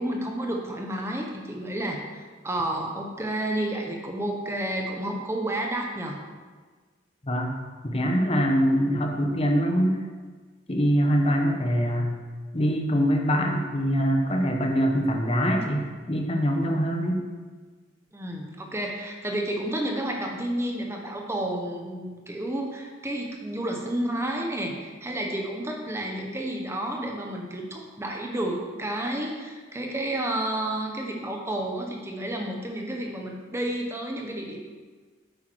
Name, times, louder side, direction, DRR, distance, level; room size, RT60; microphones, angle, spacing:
voice 1, 0.0-6.2 18.1-34.6, right 1 dB, 15° right, 1 dB, 1.0 m, -31 dB
voice 2, 7.2-7.6 7.8-10.0 10.7-12.1 12.5-17.2, equal, 30° left, 2 dB, 1.0 m, -24 dB
8.9 x 8.2 x 4.6 m, 1.4 s
head